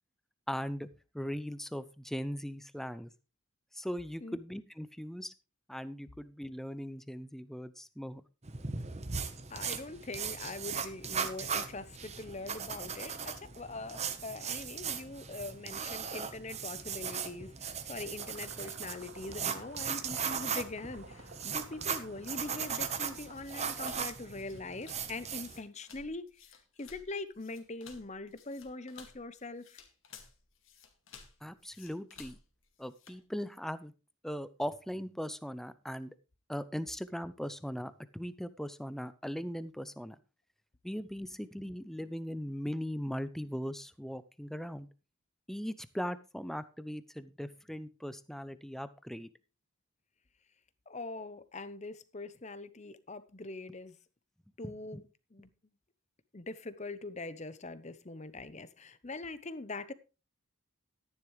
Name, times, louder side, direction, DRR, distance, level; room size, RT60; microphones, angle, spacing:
voice 1, 0.5-0.9 1.1-3.1 3.7-5.3 5.7-8.2 31.4-32.4 32.8-33.9 34.2-36.1 36.5-40.2 40.8-44.9 45.5-49.3 54.6-55.0, equal, ahead, 0.6 m, -39 dB
sound 1, 8.4-25.6, right 6 dB, 30° right, 1.0 m, -38 dB
voice 2, 9.5-26.2 26.8-29.8 50.9-54.0 54.6-55.0 55.3-55.5 56.3-59.9, left 2 dB, 30° left, 0.8 m, -42 dB
sound 2, 18.2-23.3, right 3 dB, 65° right, 3.2 m, -53 dB
sound 3, 22.7-33.2, left 6 dB, 65° left, 2.2 m, -56 dB
13.0 x 10.5 x 3.2 m
head